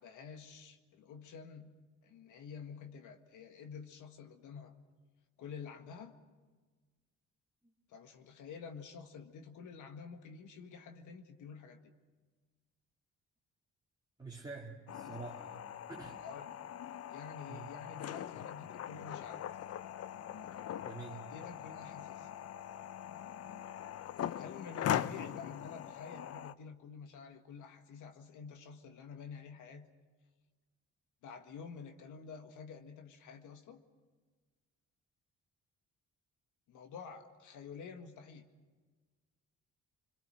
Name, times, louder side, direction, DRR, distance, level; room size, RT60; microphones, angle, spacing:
voice 1, 0.0-1.7 2.0-4.7 5.4-6.1 7.9-11.8 16.2-16.5 17.1-19.4 21.1-22.3 24.4-29.9 31.2-33.8 36.7-38.4, left 6 dB, 80° left, 6 dB, 1.8 m, -49 dB
voice 2, 14.2-15.6 15.9-16.2 17.5-17.7 20.9-21.3 24.8-25.2, right 4 dB, 15° right, -4 dB, 2.7 m, -47 dB
sound 1, 14.9-26.5, left 10 dB, 55° left, 0.6 m, -41 dB
26.5 x 22.0 x 6.5 m, 1.4 s
cardioid pair, 90°, 30 cm